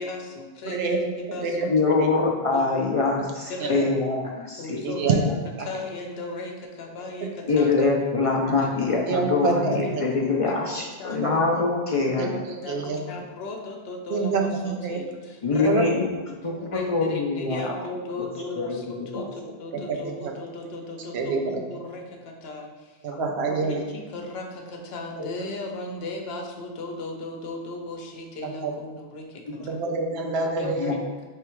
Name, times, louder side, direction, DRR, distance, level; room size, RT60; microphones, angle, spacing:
voice 1, 0.0-1.6 1.9-2.0 2.5-3.0 3.5-3.8 4.3-5.2 5.6-7.7 8.6-8.7 9.5-10.5 11.0-11.4 12.0-12.2 12.5-15.7 16.6-23.0 23.5-29.8 30.6-31.2, left 2 dB, 75° left, 2 dB, 0.9 m, -36 dB
voice 2, 0.6-1.0 1.4-1.7 2.0-2.1 3.6-3.8 4.8-5.2 5.6-5.7 7.8-7.9 9.1-10.0 12.2-12.3 12.7-13.0 14.1-15.0 15.6-15.8 19.7-20.3 21.1-21.6 23.0-23.8 28.4-28.7 29.7-30.9, right 4 dB, 80° right, 2 dB, 0.9 m, -26 dB
voice 3, 1.7-4.8 7.5-12.3 15.4-17.7 18.2-18.3 18.6-19.3 29.5-29.6 30.6-30.9, left 3 dB, 45° left, -1 dB, 0.4 m, -24 dB
3.4 x 3.4 x 4.4 m, 1.3 s
omnidirectional pair, 1.0 m